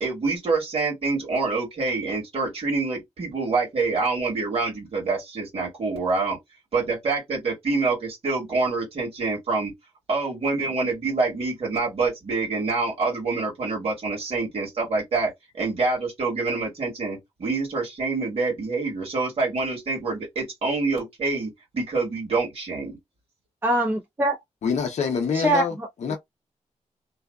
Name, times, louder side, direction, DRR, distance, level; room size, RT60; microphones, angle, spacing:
voice 1, 0.0-6.4 6.7-9.7 10.1-23.0, right 3 dB, 50° right, 1.5 m, -26 dB
voice 2, 23.6-24.4 25.3-25.9, right 1 dB, 20° right, 0.7 m, -23 dB
voice 3, 24.6-25.7 26.0-26.2, left 6 dB, 65° left, 0.5 m, -25 dB
2.6 x 2.3 x 2.2 m
wide cardioid pair, 180°, 12 cm